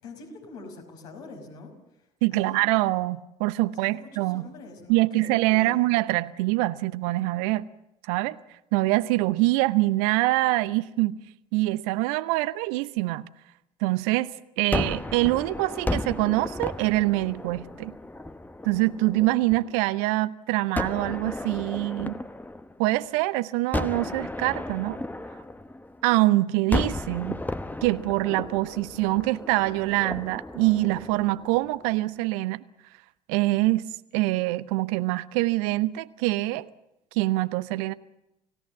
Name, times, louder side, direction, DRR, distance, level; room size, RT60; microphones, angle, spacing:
voice 1, 0.0-1.7 2.3-2.9 3.8-5.8, left 3 dB, 70° left, 5.6 m, -44 dB
voice 2, 2.2-4.5 4.9-7.7 8.1-8.4 8.7-11.2 11.5-13.2 13.8-14.3 14.6-18.0 18.6-22.2 22.8-25.0 26.0-27.4 27.8-32.6 33.3-33.8 34.1-36.7 37.1-37.9, right 19 dB, 60° right, 0.8 m, -24 dB
Gunshot gunfire, 14.7-19.8 20.7-23.2 23.7-26.2 26.7-31.9, left 2 dB, 10° left, 1.1 m, -34 dB
29.0 x 17.0 x 7.4 m
figure-of-eight pair, 60°, 21 cm